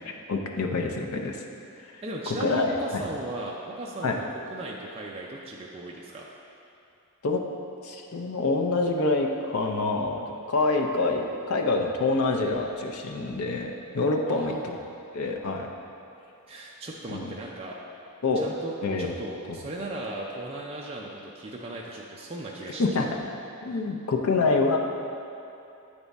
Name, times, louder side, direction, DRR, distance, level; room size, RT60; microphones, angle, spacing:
voice 1, 0.3-1.4 2.4-3.0 4.0-4.1 7.2-7.4 7.8-14.8 15.1-15.7 17.1-17.3 18.2-18.4 18.8-19.1 19.5-19.6 22.8-23.1 23.6-24.8, left 3 dB, 80° left, 2 dB, 0.6 m, -26 dB
voice 2, 2.0-6.3 14.3-14.7 16.5-17.8 18.3-18.7 19.0-23.1 23.6-23.8, right 2 dB, 25° right, -3 dB, 0.4 m, -37 dB
8.7 x 3.5 x 4.1 m, 2.7 s
head